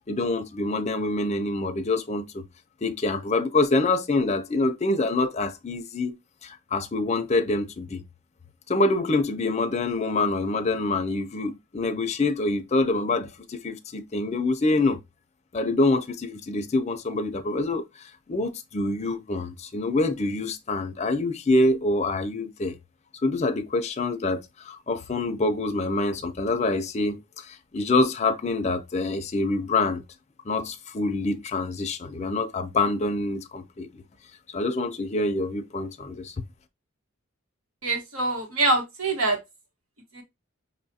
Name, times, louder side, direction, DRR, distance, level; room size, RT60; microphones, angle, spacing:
voice 1, 0.1-2.4 2.8-6.2 6.4-8.0 8.7-15.0 15.5-17.8 18.3-22.8 23.2-30.0 30.5-33.9 34.5-36.3, left 2 dB, 30° left, 0.5 m, -26 dB
voice 2, 37.8-39.4 40.1-40.2, right 2 dB, 80° right, 1.3 m, -24 dB
5.6 x 2.4 x 2.7 m
head